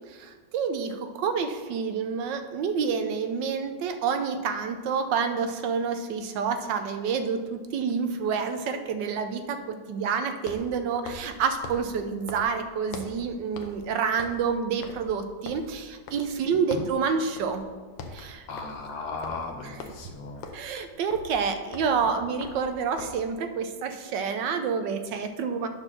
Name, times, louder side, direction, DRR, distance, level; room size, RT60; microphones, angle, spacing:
voice 1, 0.1-17.6 18.1-18.5 19.6-19.7 20.5-25.7, right 6 dB, 75° right, 8 dB, 1.2 m, -28 dB
sound 1, 10.4-13.3 13.6-13.9 14.1-16.4 16.7-17.0 17.4-17.6 17.9-23.3, left 4 dB, 85° left, 1.6 m, -43 dB
voice 2, 18.5-20.4, left 3 dB, 60° left, 3 dB, 1.3 m, -36 dB
8.8 x 4.1 x 6.1 m, 1.5 s
omnidirectional pair, 2.1 m